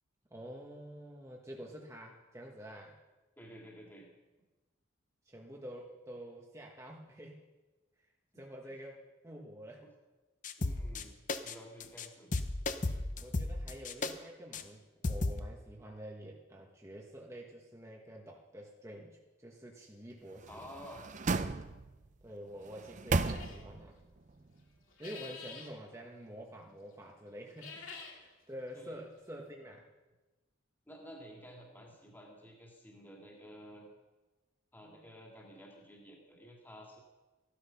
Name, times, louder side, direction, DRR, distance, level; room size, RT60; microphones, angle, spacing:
voice 1, 0.3-3.0 5.2-7.4 8.4-9.8 13.2-20.6 22.2-23.9 25.0-29.8, equal, 15° right, -1 dB, 1.3 m, -48 dB
voice 2, 3.4-4.1 10.6-11.1 11.4-12.3 20.5-21.1 28.8-29.0 30.9-33.9 34.7-37.0, equal, 10° left, -1 dB, 2.3 m, -52 dB
sound 1, 10.4-11.0 11.3-11.5 11.8-12.1 12.3-14.1 14.5-14.6 15.0-15.4, left 2 dB, 40° left, 0.8 m, -34 dB
sound 2, 20.4-22.1 22.6-23.9 24.3-24.4, right 3 dB, 40° right, 0.6 m, -35 dB
sound 3, 23.2-23.6 24.9-25.7 27.5-28.2, left 5 dB, 85° left, 2.4 m, -47 dB
15.0 x 12.0 x 5.8 m, 1.2 s
head